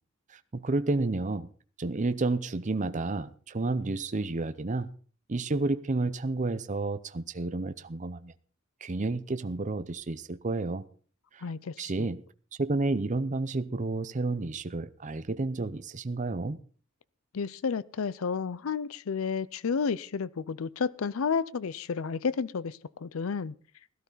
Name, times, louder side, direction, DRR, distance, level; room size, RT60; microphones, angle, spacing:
voice 1, 0.3-1.5 1.8-4.9 5.3-8.3 8.8-10.8 11.3-11.5 11.8-12.2 12.6-16.6, right 2 dB, 35° right, 0.6 m, -30 dB
voice 2, 11.4-12.1 17.3-23.5, left 5 dB, 85° left, 0.5 m, -31 dB
17.0 x 11.5 x 4.0 m
head